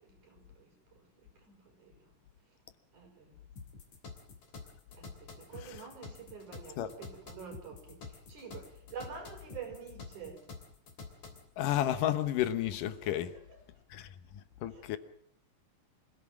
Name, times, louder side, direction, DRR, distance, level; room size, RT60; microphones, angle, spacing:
voice 1, 0.0-2.1 2.9-3.4 4.9-10.5 13.0-13.6 14.7-15.0, right 6 dB, 65° right, 6.3 m, -48 dB
sound 1, 3.6-11.5, left 4 dB, 60° left, 4.5 m, -48 dB
voice 2, 11.6-13.3 13.9-14.1 14.6-15.0, left 12 dB, 80° left, 2.6 m, -31 dB
26.0 x 16.5 x 7.4 m
omnidirectional pair, 3.8 m